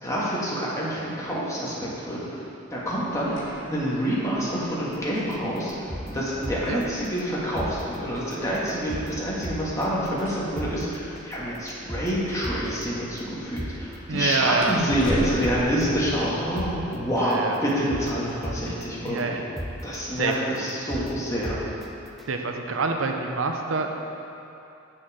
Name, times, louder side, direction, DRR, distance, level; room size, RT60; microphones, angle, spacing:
voice 1, 0.0-2.4 2.7-19.3 19.8-21.6, equal, 15° left, -7 dB, 1.6 m, -27 dB
sound 1, 2.8-16.8, equal, 90° left, 2.0 m, -41 dB
sound 2, 5.2-5.3 5.7-6.8 7.2-7.3 7.6-7.7 8.2-8.3 8.7-9.1 9.4-9.9 10.2-10.3 10.6-10.7 11.2-11.3 11.7-12.8 13.2-13.3 13.6-13.7 14.2-14.3 14.7-15.1 15.4-16.3 16.6-16.7 17.2-17.3 17.7-18.8 19.2-19.3 19.6-19.7 20.2-20.3 20.7-21.1 21.4-21.9 22.2-22.3, equal, ahead, 0.5 m, -34 dB
voice 2, 14.1-14.7 17.2-17.6 19.0-19.4 20.2-20.3 22.3-23.9, right 4 dB, 75° right, 3 dB, 0.6 m, -26 dB
7.6 x 6.3 x 4.9 m, 2.8 s
head